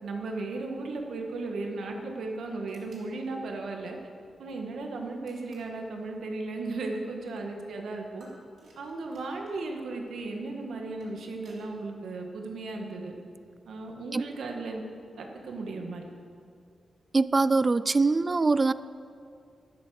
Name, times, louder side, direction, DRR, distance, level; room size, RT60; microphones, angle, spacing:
voice 1, 0.0-4.0 4.4-8.3 8.8-13.1 13.7-14.8 15.2-16.0, right 3 dB, 80° right, 2 dB, 1.7 m, -36 dB
sound 1, 2.7-3.1 5.2-5.8 8.2-9.6 10.7-11.7, right 2 dB, 55° right, 3.7 m, -59 dB
voice 2, 17.1-18.7, right 3 dB, 25° right, 16 dB, 0.3 m, -23 dB
11.5 x 11.5 x 6.4 m, 2.3 s
wide cardioid pair, 170°, 0 cm